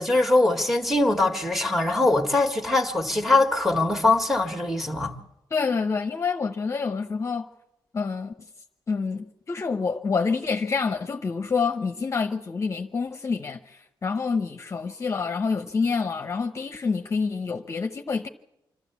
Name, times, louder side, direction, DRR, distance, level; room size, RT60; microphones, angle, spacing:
voice 1, 0.0-5.1, left 2 dB, ahead, 1.9 m, -22 dB
voice 2, 5.5-7.5 7.9-8.5 8.9-18.3, left 5 dB, 35° left, 0.9 m, -27 dB
26.5 x 13.0 x 8.3 m
wide cardioid pair, 140°, 8 cm